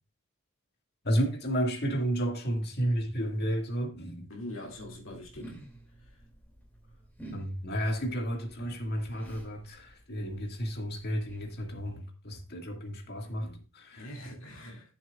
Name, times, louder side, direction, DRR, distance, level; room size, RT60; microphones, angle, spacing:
voice 1, 1.0-4.3 7.3-14.1, equal, 50° left, 1.9 m, -32 dB
voice 2, 4.3-5.5 6.0-6.2 13.9-14.9, left 1 dB, 65° left, 2.3 m, -43 dB
sound 1, 4.6-12.0, right 1 dB, 10° left, 2.5 m, -52 dB
13.5 x 7.2 x 2.4 m
head